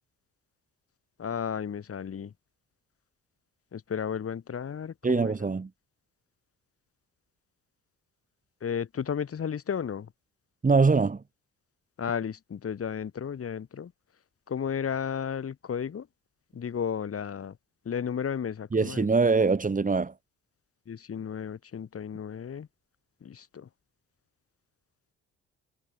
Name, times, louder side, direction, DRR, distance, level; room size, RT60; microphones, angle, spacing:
voice 1, 1.2-2.3 3.7-5.3 8.6-10.1 12.0-13.9 14.5-16.1 16.5-17.6 17.8-19.1 20.9-22.7 23.2-23.7, left 7 dB, 50° left, 4.5 m, -33 dB
voice 2, 5.0-5.7 10.6-11.2 18.7-20.1, right 4 dB, 25° right, 2.5 m, -23 dB
cardioid pair, 90°, 30 cm